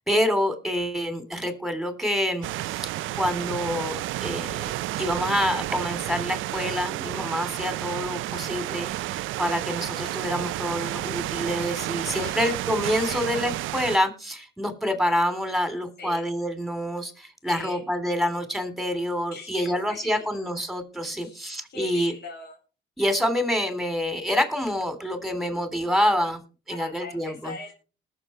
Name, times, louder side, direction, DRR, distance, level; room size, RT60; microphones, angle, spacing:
voice 1, 0.0-2.9 3.2-22.1 23.0-26.4 26.7-27.5, equal, ahead, 9 dB, 3.2 m, -27 dB
sound 1, 2.4-14.0, right 16 dB, 85° right, 0.5 m, -31 dB
voice 2, 12.0-12.4 13.0-13.3 16.0-16.2 17.5-17.9 19.3-20.1 21.2-22.6 26.8-27.7, left 4 dB, 55° left, 0 dB, 4.6 m, -41 dB
20.0 x 6.9 x 4.4 m, 0.36 s
cardioid pair, 90°, 20 cm